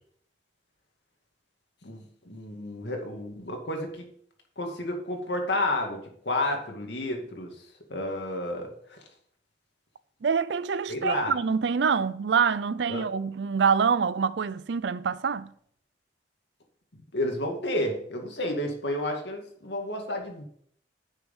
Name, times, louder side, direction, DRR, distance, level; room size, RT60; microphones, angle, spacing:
voice 1, 1.8-4.1 4.6-7.5 7.9-9.0 10.9-11.3 12.9-13.1 16.9-20.4, left 1 dB, 70° left, 2.2 m, -31 dB
voice 2, 10.2-15.5, right 6 dB, 75° right, 0.5 m, -25 dB
9.7 x 6.3 x 5.5 m
head